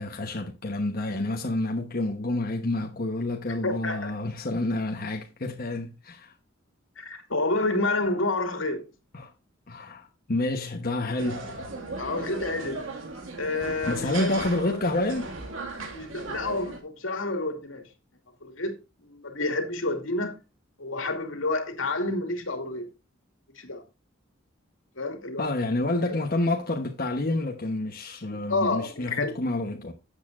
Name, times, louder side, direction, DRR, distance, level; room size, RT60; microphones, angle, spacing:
voice 1, 0.0-6.3 9.1-9.3 9.7-11.5 13.9-15.3 25.4-29.9, left 2 dB, 50° left, 1.1 m, -29 dB
voice 2, 3.6-4.1 7.0-8.8 12.0-12.9 13.4-14.3 15.8-17.8 18.4-18.8 19.0-20.4 20.8-22.9 23.6-23.8 25.0-25.5 28.3-29.3, left 2 dB, 80° left, 2.5 m, -29 dB
sound 1, 11.2-16.8, right 3 dB, 90° right, 2.1 m, -37 dB
12.5 x 8.2 x 2.6 m
head